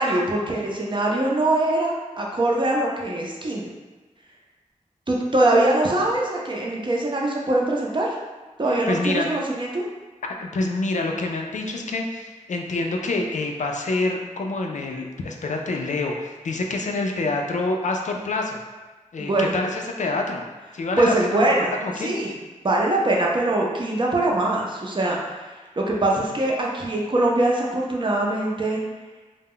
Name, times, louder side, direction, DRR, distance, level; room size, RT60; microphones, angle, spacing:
voice 1, 0.0-3.7 5.1-8.1 8.6-9.9 19.2-19.5 21.0-22.4 22.6-28.8, right 2 dB, 40° right, -2 dB, 0.5 m, -23 dB
voice 2, 8.9-9.3 10.4-18.6 19.1-20.4 20.7-22.1, left 2 dB, 70° left, 2 dB, 0.4 m, -27 dB
2.2 x 2.0 x 3.6 m, 1.3 s
wide cardioid pair, 65°, 13 cm